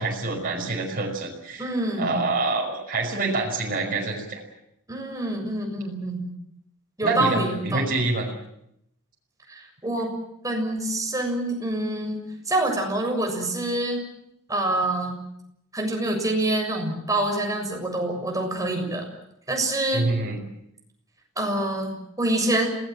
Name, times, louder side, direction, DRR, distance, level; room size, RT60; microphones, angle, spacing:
voice 1, 0.0-1.7 2.0-4.4 7.0-8.3 19.9-20.4, right 3 dB, 45° right, -1 dB, 5.7 m, -26 dB
voice 2, 1.6-2.3 4.9-6.3 7.0-8.0 9.5-10.1 10.4-14.0 14.5-15.2 15.7-19.1 19.5-20.1 21.4-22.7, right 1 dB, 15° right, 2 dB, 7.0 m, -26 dB
27.5 x 19.0 x 7.8 m, 0.77 s
head